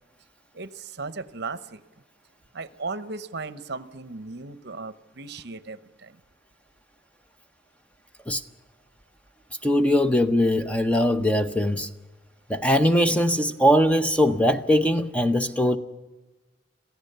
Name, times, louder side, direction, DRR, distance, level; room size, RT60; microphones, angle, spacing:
voice 1, 0.5-1.8 2.5-6.2, right 3 dB, 55° right, 0.9 m, -36 dB
voice 2, 9.6-11.9 12.5-15.8, equal, 5° left, 0.6 m, -21 dB
27.0 x 15.5 x 6.7 m
head